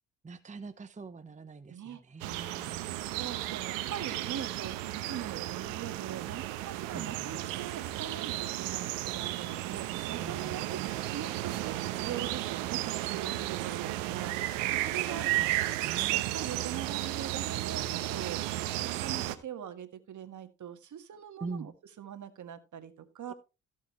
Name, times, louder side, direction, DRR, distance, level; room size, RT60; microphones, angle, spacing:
voice 1, 0.2-2.8 6.9-7.4 10.1-10.9 13.8-13.9 14.9-15.5 15.8-16.2 21.4-21.7, right 4 dB, 20° right, 10 dB, 1.0 m, -44 dB
voice 2, 1.7-2.0 2.5-2.6 3.0-10.9 11.1-15.2 16.1-18.4 18.8-21.7 22.0-23.3, right 9 dB, 50° right, 9 dB, 1.8 m, -42 dB
sound 1, 2.2-19.4, right 16 dB, 85° right, 1.0 m, -34 dB
16.0 x 6.6 x 3.2 m, 0.28 s
hypercardioid pair, 60°, 38 cm